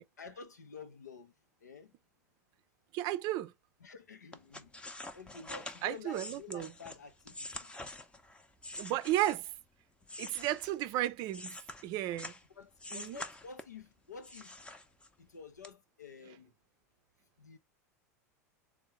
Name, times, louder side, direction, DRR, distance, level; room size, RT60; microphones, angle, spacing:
voice 1, 0.2-1.3 1.6-1.9 3.8-4.9 5.1-7.7 10.2-10.4 12.1-12.3 12.6-14.6 15.2-16.5 17.4-17.6, left 5 dB, 90° left, 0.6 m, -50 dB
voice 2, 2.9-3.5 5.8-6.7 8.8-9.5 10.2-12.3 12.9-13.2, right 14 dB, 50° right, 0.5 m, -34 dB
sound 1, 4.3-9.6 10.0-12.4 12.8-13.8 14.2-15.3 15.6-15.7, left 2 dB, 10° left, 0.6 m, -46 dB
3.6 x 2.1 x 4.3 m
hypercardioid pair, 90°, 9 cm